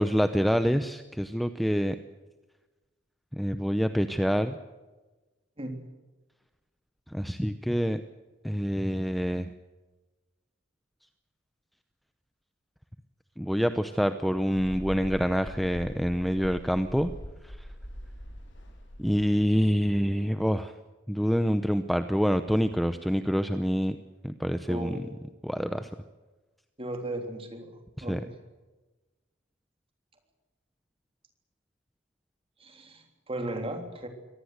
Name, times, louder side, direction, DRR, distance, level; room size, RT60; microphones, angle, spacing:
voice 1, 0.0-2.0 3.3-4.6 7.1-8.0 8.4-9.5 13.4-17.1 17.4-17.7 19.0-20.7 21.1-24.0 24.2-25.0 25.4-25.9 28.0-28.2, equal, ahead, 9 dB, 0.7 m, -26 dB
Mechanical fan, 14.5-19.9, equal, 65° left, 4.4 m, -43 dB
voice 2, 24.7-25.0 26.8-28.3 32.6-34.1, right 1 dB, 30° right, 5 dB, 3.5 m, -36 dB
24.5 x 19.0 x 8.1 m, 1.2 s
head